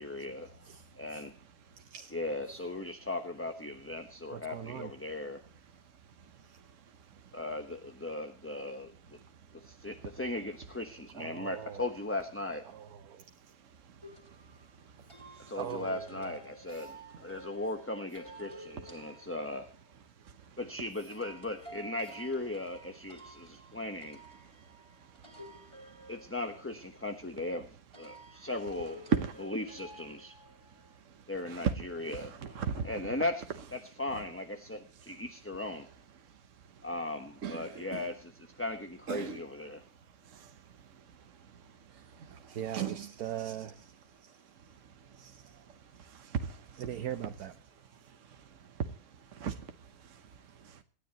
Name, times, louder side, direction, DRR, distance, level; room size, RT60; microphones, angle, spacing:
voice 1, 0.0-0.7 1.0-1.3 2.1-5.4 7.3-8.9 9.6-12.7 15.5-19.7 20.6-24.2 26.1-29.1 29.4-30.4 31.3-35.9 36.8-39.8, left 2 dB, 10° left, 0.9 m, -38 dB
voice 2, 1.8-2.1 4.3-4.9 6.5-6.6 11.1-11.8 12.6-13.3 15.6-16.4 16.7-16.9 41.9-43.9 44.2-44.3 45.2-45.6 46.8-47.5, right 10 dB, 75° right, 1.4 m, -41 dB
sound 1, 14.0-19.9 21.1-27.2 27.9-30.9, right 1 dB, 15° right, 3.4 m, -52 dB
voice 3, 32.5-32.9 37.4-38.0 39.1-39.4 40.3-40.5 42.2-43.0 46.0-46.8 48.3-48.4 49.3-49.7 50.0-50.2 50.6-50.8, right 6 dB, 55° right, 1.3 m, -35 dB
27.0 x 10.0 x 3.0 m
omnidirectional pair, 1.6 m